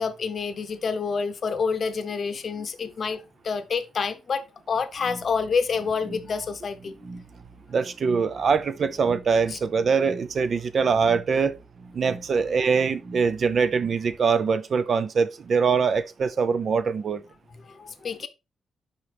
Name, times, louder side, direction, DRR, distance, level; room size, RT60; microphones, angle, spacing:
voice 1, 0.0-7.2 9.5-9.6 17.7-18.3, left 5 dB, 40° left, 0.8 m, -28 dB
sound 1, 5.0-14.0, right 3 dB, 20° right, 1.8 m, -45 dB
voice 2, 7.7-11.6 11.9-17.2, right 5 dB, 40° right, 0.4 m, -23 dB
11.0 x 4.3 x 3.3 m
wide cardioid pair, 165°, 0 cm